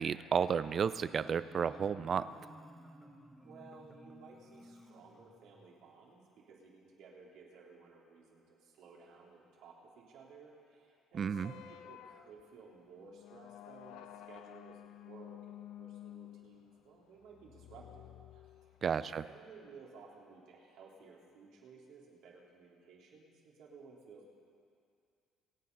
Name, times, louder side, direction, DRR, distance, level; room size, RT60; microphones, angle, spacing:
voice 1, 0.0-2.3 11.1-11.5 18.8-19.2, right 7 dB, 35° right, 15 dB, 0.5 m, -32 dB
Marimba xylophone, 0.6-5.7, equal, 5° right, 1.1 m, -56 dB
voice 2, 3.4-14.8 15.0-18.4 18.9-24.3, right 4 dB, 70° right, -3 dB, 3.5 m, -56 dB
sound 1, 11.3-19.1, left 12 dB, 75° left, 0.6 m, -53 dB
26.5 x 9.4 x 5.5 m, 2.4 s
cardioid pair, 135°, 0 cm